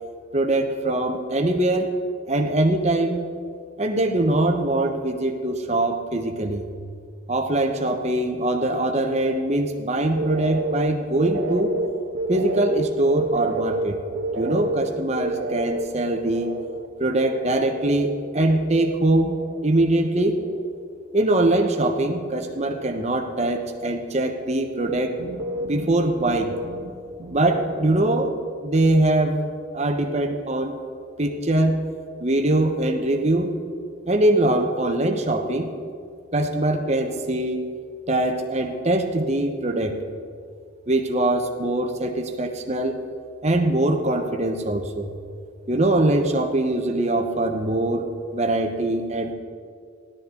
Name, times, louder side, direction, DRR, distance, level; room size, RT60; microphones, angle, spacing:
voice 1, 0.3-1.9 2.3-3.2 3.8-6.7 7.3-11.8 12.3-14.0 14.4-16.5 17.0-20.4 21.1-25.1 25.6-26.6 27.3-28.3 28.6-30.8 31.2-31.8 32.2-33.5 34.1-35.7 36.3-37.6 38.1-40.0 40.9-43.0 43.4-45.1 45.7-48.1 48.3-49.3, right 1 dB, 35° right, 4 dB, 1.1 m, -22 dB
sound 1, 10.0-18.9 19.1-19.9 20.1-20.9 21.2-21.6 24.9-28.0, right 1 dB, 90° right, 1.5 m, -31 dB
16.5 x 12.5 x 3.9 m, 2.2 s
head